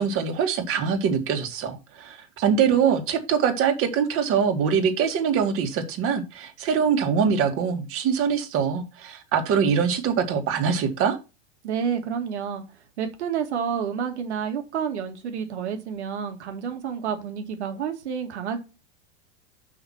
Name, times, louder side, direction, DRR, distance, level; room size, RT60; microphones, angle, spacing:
voice 1, 0.0-11.2, right 7 dB, 40° right, 2.1 m, -23 dB
voice 2, 11.6-12.6 13.0-18.6, right 7 dB, 90° right, 2.2 m, -29 dB
6.0 x 5.7 x 5.7 m
supercardioid pair, 130°, 33 cm